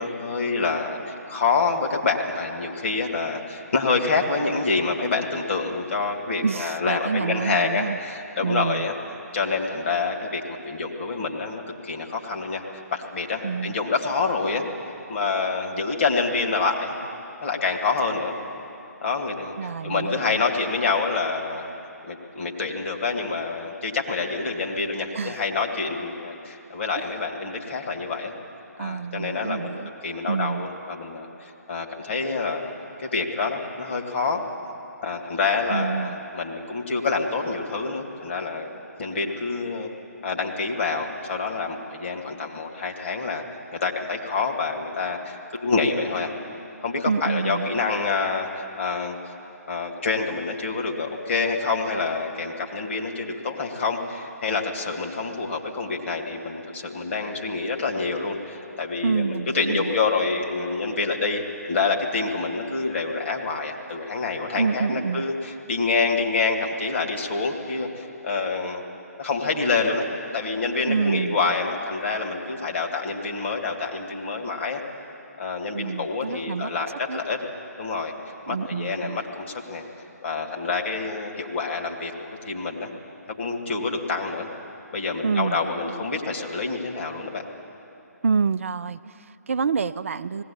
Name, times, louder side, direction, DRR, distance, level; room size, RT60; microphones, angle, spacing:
voice 1, 0.0-8.9 9.3-12.6 12.9-14.6 15.1-16.9 17.4-18.3 19.0-21.7 22.0-28.3 28.8-32.7 33.0-34.4 35.0-38.7 39.0-39.9 40.2-43.4 43.7-46.3 46.8-49.2 49.7-68.8 69.2-70.0 70.3-74.8 75.4-77.4 77.8-78.1 78.5-79.8 80.2-82.9 83.4-84.5 84.9-87.5, left 4 dB, 45° left, 1 dB, 2.4 m, -27 dB
voice 2, 6.4-8.0 8.4-8.9 13.4-13.8 19.6-20.4 25.1-25.4 27.0-27.1 28.8-29.9 30.3-30.7 35.7-36.2 47.1-47.8 59.0-59.9 64.5-65.3 70.9-71.7 75.7-76.7 77.1-77.2 78.5-79.2 85.2-86.1 88.2-90.4, right 5 dB, 50° right, 13 dB, 0.4 m, -27 dB
19.0 x 17.0 x 8.8 m, 2.8 s
figure-of-eight pair, 140°, 9 cm